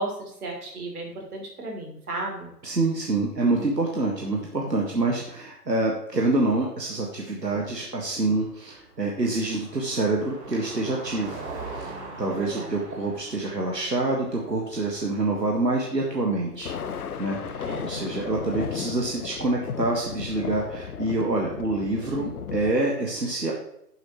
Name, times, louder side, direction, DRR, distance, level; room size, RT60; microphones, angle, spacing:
voice 1, 0.0-2.5 12.3-12.7 17.6-17.9, right 2 dB, 65° right, 0 dB, 3.4 m, -34 dB
voice 2, 2.6-11.4 11.7-11.9 12.2-16.7 17.2-23.5, right 2 dB, 85° right, -1 dB, 1.7 m, -26 dB
Car passing by, 7.7-15.7, right 3 dB, 45° right, 2.8 m, -42 dB
Thunder, 16.5-22.7, left 6 dB, 65° left, 0.9 m, -35 dB
9.7 x 7.8 x 3.1 m, 0.78 s
figure-of-eight pair, 125°, 48 cm